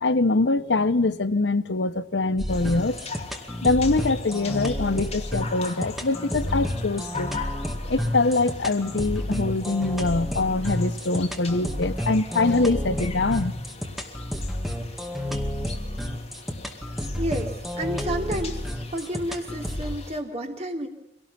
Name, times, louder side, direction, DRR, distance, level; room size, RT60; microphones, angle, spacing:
voice 1, 0.0-3.0 3.6-7.3 7.9-13.7, left 3 dB, 85° left, 0.9 m, -24 dB
sound 1, 2.4-20.0, left 1 dB, ahead, 2.1 m, -31 dB
sound 2, 2.5-20.2, left 5 dB, 35° left, 2.7 m, -41 dB
voice 2, 17.2-18.6 18.9-20.9, right 1 dB, 40° right, 3.1 m, -30 dB
25.0 x 18.5 x 5.7 m
head